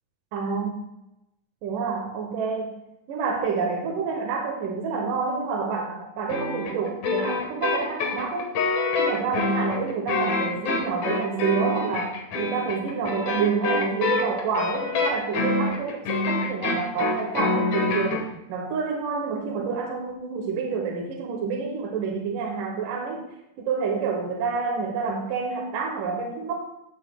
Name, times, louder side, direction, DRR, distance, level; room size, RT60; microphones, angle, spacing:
voice 1, 0.3-0.8 1.6-2.8 3.1-8.5 9.0-23.2 23.6-26.5, right 5 dB, 75° right, 1 dB, 2.6 m, -28 dB
sound 1, 6.3-18.3, left 3 dB, 60° left, 2.5 m, -26 dB
15.0 x 7.4 x 2.3 m, 0.88 s
omnidirectional pair, 3.9 m